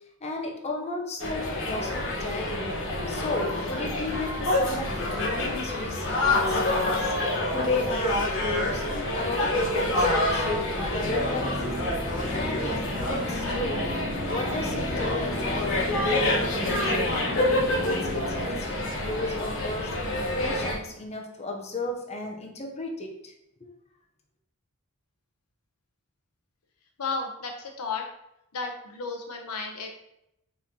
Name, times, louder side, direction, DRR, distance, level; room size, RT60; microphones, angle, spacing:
voice 1, 0.2-7.1 7.5-11.9 12.3-14.0 14.2-16.9 17.3-20.0 20.4-23.3, left 2 dB, 30° left, 2 dB, 0.7 m, -34 dB
sound 1, 1.2-20.8, left 1 dB, 60° left, 1.2 m, -27 dB
sound 2, 11.0-18.4, left 1 dB, 5° right, 1.5 m, -36 dB
voice 2, 27.0-28.0 28.5-29.9, left 4 dB, 85° left, 2 dB, 0.8 m, -33 dB
4.4 x 4.3 x 2.8 m, 0.80 s
head